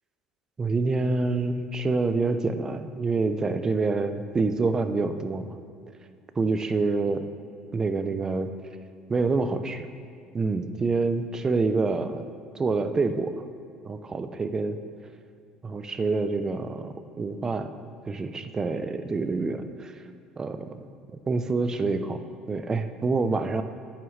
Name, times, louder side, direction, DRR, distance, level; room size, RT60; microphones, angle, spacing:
voice 1, 0.6-5.5 6.4-7.2 7.7-8.5 9.1-9.9 10.3-12.2 12.5-13.3 13.8-14.8 15.6-17.7 18.1-19.9 20.4-20.9 21.1-22.2 22.5-23.6, right 3 dB, 30° right, 10 dB, 0.7 m, -27 dB
11.0 x 8.9 x 3.3 m, 2.3 s
hypercardioid pair, 75°, 2 cm